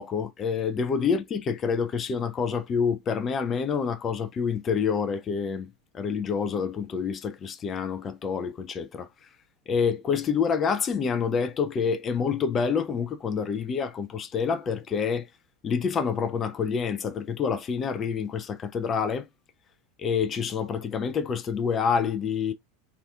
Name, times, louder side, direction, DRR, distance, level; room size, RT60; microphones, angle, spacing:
voice 1, 0.0-5.7 5.9-9.1 9.7-15.3 15.6-19.3 20.0-22.5, left 6 dB, 25° left, 0.4 m, -27 dB
2.4 x 2.3 x 2.3 m
figure-of-eight pair, 85°, 0 cm